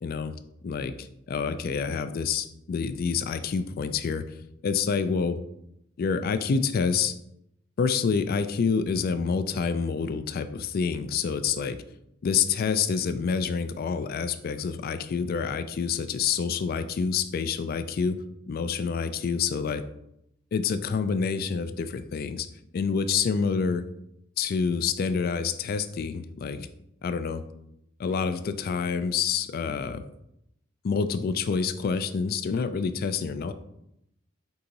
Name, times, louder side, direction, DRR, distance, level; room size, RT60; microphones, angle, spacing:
voice 1, 0.0-0.3 0.6-4.2 4.6-5.4 6.0-7.1 7.8-11.8 12.2-18.2 18.5-19.8 20.5-22.5 22.7-23.8 24.4-26.7 27.0-27.4 28.0-30.0 30.8-33.5, left 5 dB, 45° left, 11 dB, 0.3 m, -27 dB
4.6 x 2.9 x 3.9 m, 0.81 s
head